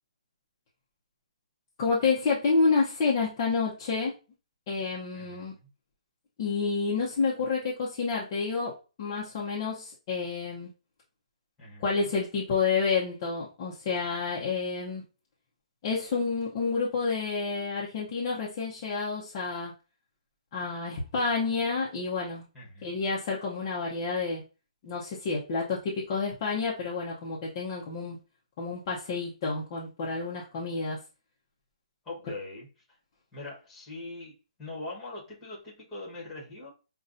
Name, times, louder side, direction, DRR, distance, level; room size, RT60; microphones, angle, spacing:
voice 1, 1.8-4.1 4.7-5.5 6.4-8.7 9.0-10.7 11.8-15.0 15.8-19.7 20.5-22.4 22.8-24.4 24.8-25.8 26.1-28.2 28.6-31.0, left 4 dB, 25° left, -5 dB, 0.7 m, -29 dB
voice 2, 5.1-5.7 11.6-12.1 22.5-22.9 32.0-33.0 33.3-36.7, left 2 dB, 5° left, -6 dB, 1.3 m, -42 dB
5.4 x 2.3 x 2.6 m, 0.32 s
hypercardioid pair, 170°, 4 cm